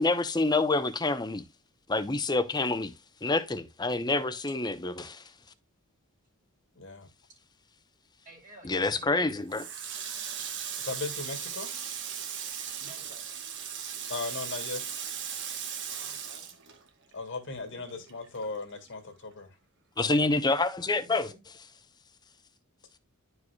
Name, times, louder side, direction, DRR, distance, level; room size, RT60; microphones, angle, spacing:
voice 1, 0.0-1.5 1.9-2.9 3.2-5.3 8.6-9.6 20.0-21.3, left 3 dB, 20° left, 0.7 m, -27 dB
voice 2, 6.8-7.1 10.8-11.7 14.1-15.0 17.1-19.6, left 3 dB, 55° left, 1.8 m, -37 dB
voice 3, 8.2-9.4 12.8-13.3 15.8-16.5 17.7-18.0 21.0-21.4, right 1 dB, 35° right, 2.1 m, -52 dB
Water tap faucet, 9.5-17.4 17.7-19.0, right 8 dB, 55° right, 1.1 m, -37 dB
11.0 x 5.0 x 2.2 m
head